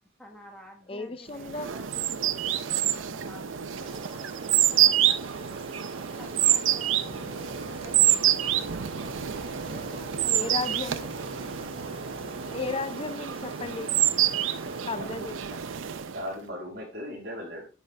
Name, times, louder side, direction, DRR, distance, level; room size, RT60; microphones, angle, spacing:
voice 1, 0.2-12.0, equal, 5° left, 1.1 m, -52 dB
voice 2, 0.9-1.7 10.3-11.1 12.5-14.0 14.9-15.6, left 3 dB, 30° left, 0.5 m, -34 dB
sound 1, 1.4-16.3, right 11 dB, 90° right, 0.6 m, -27 dB
sound 2, 3.7-15.0, right 2 dB, 30° right, 1.1 m, -47 dB
sound 3, 7.0-12.8, left 1 dB, 70° left, 3.3 m, -44 dB
voice 3, 14.3-15.3 15.8-17.7, equal, 50° right, 5.0 m, -41 dB
10.0 x 5.6 x 3.3 m
head